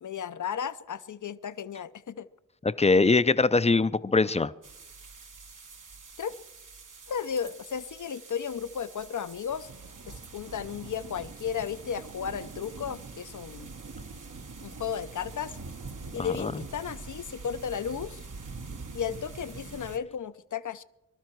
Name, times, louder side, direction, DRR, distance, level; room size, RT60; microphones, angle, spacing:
voice 1, 0.0-2.3 6.2-6.3 7.1-9.7 10.1-13.7 14.6-15.5 16.1-18.2 18.9-20.8, left 7 dB, 70° left, 14 dB, 0.6 m, -34 dB
voice 2, 2.6-4.5 16.2-16.5, left 3 dB, 20° left, 15 dB, 0.5 m, -22 dB
sound 1, 4.6-20.0, right 4 dB, 70° right, 1.3 m, -44 dB
24.5 x 12.5 x 4.6 m, 0.97 s
wide cardioid pair, 90°, 32 cm